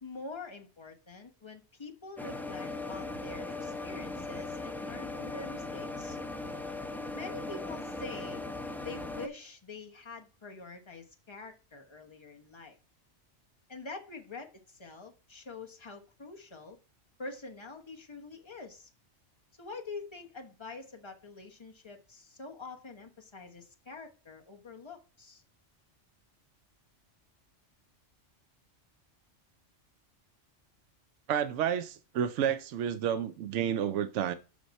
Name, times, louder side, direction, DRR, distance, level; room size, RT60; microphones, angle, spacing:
voice 1, 0.0-6.2 7.1-8.4 8.8-12.8 13.7-16.8 17.2-18.9 19.6-25.4, left 3 dB, 25° left, 1.1 m, -45 dB
sound 1, 2.2-9.3, left 2 dB, ahead, 0.6 m, -39 dB
voice 2, 31.3-34.3, right 9 dB, 80° right, 0.9 m, -30 dB
6.2 x 5.9 x 4.1 m
omnidirectional pair, 1.2 m